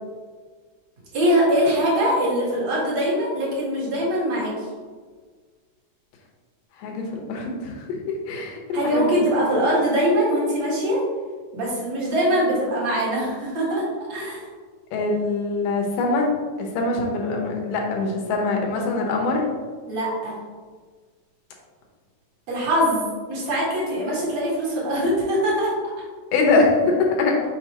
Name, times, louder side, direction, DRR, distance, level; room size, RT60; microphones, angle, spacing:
voice 1, 1.1-4.5 8.7-11.0 11.5-14.4 19.9-20.4 22.5-25.7, equal, 55° right, -6 dB, 2.8 m, -22 dB
voice 2, 6.8-9.2 14.9-16.3 16.6-19.5 26.3-27.4, left 3 dB, 80° left, 0 dB, 2.6 m, -23 dB
6.8 x 5.3 x 2.9 m, 1.5 s
omnidirectional pair, 3.9 m